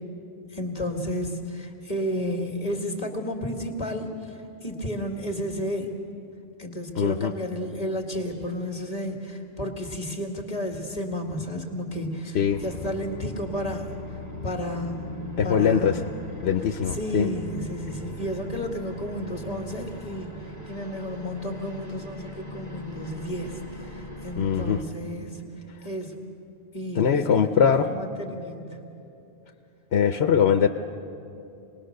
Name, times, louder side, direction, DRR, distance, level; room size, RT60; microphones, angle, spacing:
voice 1, 0.5-5.9 6.6-13.9 14.4-15.1 15.4-16.1 16.9-25.4 25.8-26.2 26.7-27.5 27.8-28.8, equal, 40° left, 1 dB, 2.1 m, -32 dB
voice 2, 6.9-7.3 12.3-12.6 15.4-16.0 16.4-17.3 24.4-24.8 26.9-27.9 29.9-30.7, left 7 dB, 85° left, 7 dB, 1.0 m, -22 dB
sound 1, 12.5-24.8, equal, 15° right, 2.2 m, -40 dB
26.5 x 20.0 x 6.6 m, 2.8 s
omnidirectional pair, 1.1 m